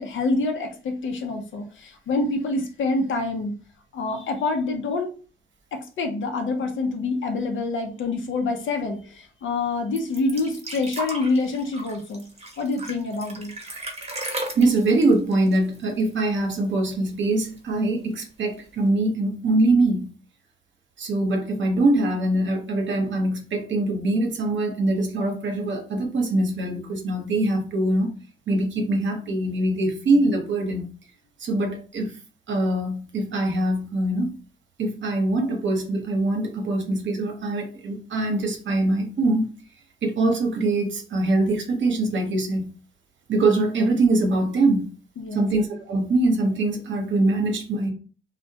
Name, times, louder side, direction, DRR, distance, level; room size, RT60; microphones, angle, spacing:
voice 1, 0.0-3.5 3.9-5.1 5.7-12.3 12.6-13.5 45.2-45.5, left 3 dB, 65° left, 0.6 m, -26 dB
sound 1, 10.0-16.4 16.6-16.7 17.1-17.8 18.6-18.7, right 2 dB, 30° right, 0.9 m, -35 dB
voice 2, 14.6-20.1 21.0-28.1 28.5-30.9 31.4-32.1 32.5-34.3 34.8-39.5 40.0-42.7 43.3-44.9 45.3-47.9, right 2 dB, 65° right, 0.8 m, -23 dB
2.1 x 2.1 x 2.7 m
supercardioid pair, 40°, 21 cm